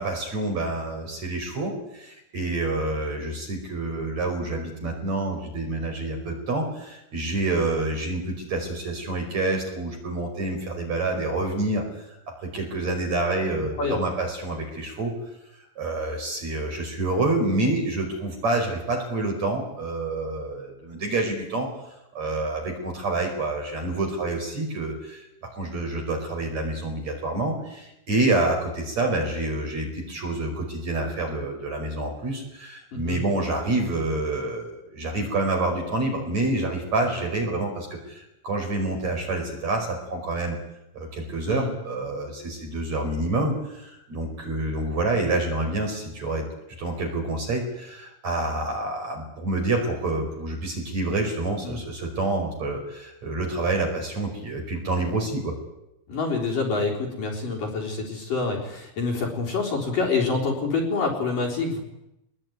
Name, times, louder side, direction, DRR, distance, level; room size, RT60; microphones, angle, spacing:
voice 1, 0.0-12.2 12.4-15.1 15.8-21.7 22.1-25.3 25.5-40.6 40.9-46.5 46.8-55.6, right 2 dB, 35° right, 3 dB, 5.9 m, -27 dB
voice 2, 32.9-33.2 41.5-41.7 51.6-51.8 56.1-61.8, left 4 dB, 45° left, 0 dB, 5.1 m, -26 dB
25.0 x 21.0 x 9.4 m, 0.85 s
omnidirectional pair, 5.8 m